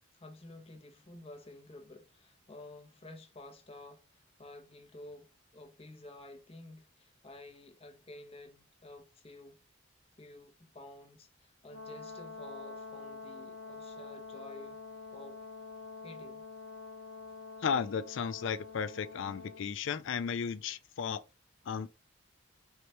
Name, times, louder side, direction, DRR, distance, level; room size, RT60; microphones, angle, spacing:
voice 1, 0.1-9.6 10.2-14.8 15.1-15.4 16.0-16.4, left 2 dB, 25° left, 0.7 m, -51 dB
Brass instrument, 11.7-19.7, left 3 dB, 80° left, 1.2 m, -47 dB
voice 2, 17.6-21.2 21.7-21.9, left 6 dB, 60° left, 0.3 m, -34 dB
4.6 x 2.8 x 3.2 m
head